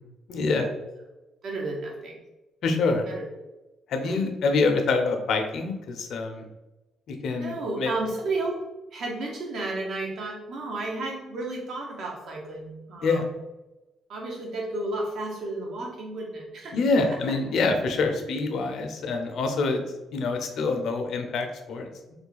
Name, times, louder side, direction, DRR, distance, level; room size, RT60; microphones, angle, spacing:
voice 1, 0.3-0.7 2.6-3.1 3.9-6.4 7.1-7.9 13.0-13.2 16.7-19.8 20.1-21.9, left 3 dB, 70° left, 5 dB, 0.6 m, -26 dB
voice 2, 1.4-2.2 3.1-3.2 3.9-4.1 7.4-8.5 8.9-13.2 14.1-16.8, right 2 dB, 65° right, -1 dB, 1.0 m, -32 dB
3.2 x 2.3 x 3.8 m, 1.0 s
cardioid pair, 90°, 0 cm